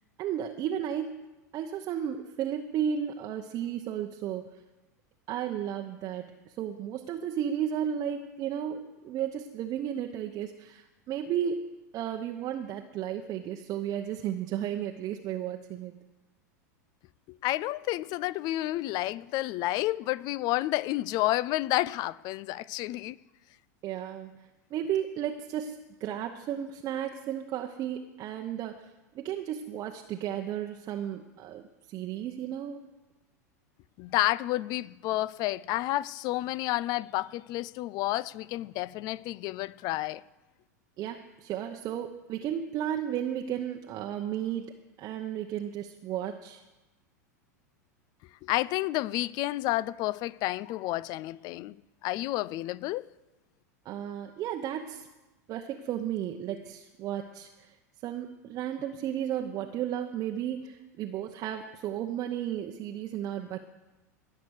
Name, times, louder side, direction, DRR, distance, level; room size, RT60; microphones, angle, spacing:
voice 1, 0.2-1.3 1.5-4.6 5.3-15.9 23.8-32.8 41.0-44.7 45.0-46.6 53.8-55.1 55.5-57.7 58.0-63.6, right 10 dB, 40° right, 0.8 m, -34 dB
voice 2, 17.4-23.2 34.0-40.2 48.4-51.7 52.0-53.0, left 17 dB, 45° left, 0.4 m, -30 dB
19.0 x 6.7 x 6.4 m
hypercardioid pair, 100°, 9 cm